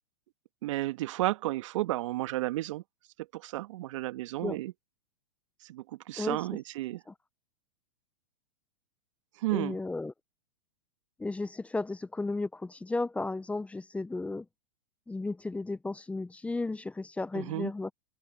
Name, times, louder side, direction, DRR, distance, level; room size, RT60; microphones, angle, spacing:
voice 1, 0.6-2.8 3.3-4.7 5.6-7.0 9.4-9.8 17.3-17.7, right 16 dB, 60° right, 1.8 m, -32 dB
voice 2, 6.2-6.6 7.1-7.2 9.5-10.1 11.2-14.5 15.1-17.9, left 3 dB, 5° left, 0.8 m, -34 dB
open air
hypercardioid pair, 110°, 18 cm